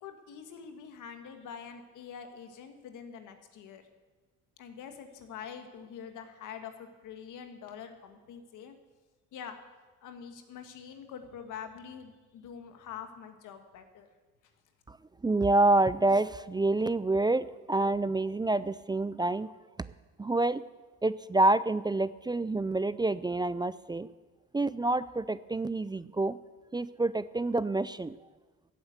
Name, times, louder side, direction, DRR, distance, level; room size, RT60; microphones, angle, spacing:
voice 1, 0.0-3.8 4.6-8.7 9.3-9.6 10.0-14.1, left 7 dB, 85° left, 6 dB, 1.7 m, -45 dB
voice 2, 15.2-19.5 20.2-20.6 21.0-24.1 24.5-26.4 26.7-28.1, right 2 dB, 15° right, 16 dB, 0.4 m, -27 dB
14.5 x 8.3 x 8.1 m, 1.3 s
cardioid pair, 90°, 30 cm